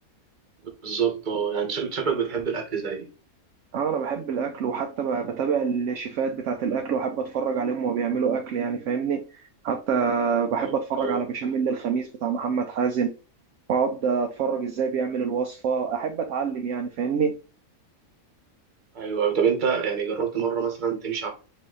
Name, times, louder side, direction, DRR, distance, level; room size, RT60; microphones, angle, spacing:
voice 1, 0.8-3.1 10.6-11.2 18.9-21.3, right 7 dB, 35° right, 1.0 m, -26 dB
voice 2, 3.7-9.2 9.6-13.1 13.7-17.4, right 6 dB, 70° right, 0.8 m, -26 dB
4.1 x 2.7 x 3.7 m
omnidirectional pair, 1.5 m